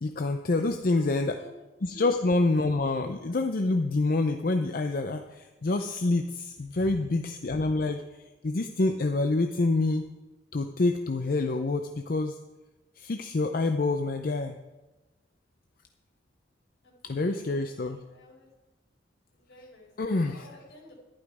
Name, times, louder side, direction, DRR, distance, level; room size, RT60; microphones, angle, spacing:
voice 1, 0.0-1.3 1.8-8.0 8.4-10.1 10.5-12.4 13.0-14.5 17.0-18.0 20.0-20.5, left 2 dB, 50° left, 6 dB, 0.6 m, -27 dB
voice 2, 0.6-1.6 1.9-2.1 6.7-7.0 16.8-18.5 19.3-20.9, left 2 dB, 75° left, -2 dB, 4.7 m, -49 dB
11.5 x 11.5 x 4.9 m, 1.1 s
head